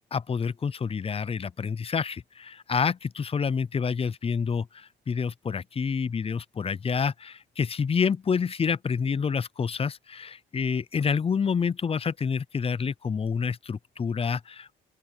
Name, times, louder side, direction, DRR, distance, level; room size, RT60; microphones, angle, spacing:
voice 1, 0.1-14.8, left 6 dB, 30° left, 0.6 m, -28 dB
open air
cardioid pair, 90°, 20 cm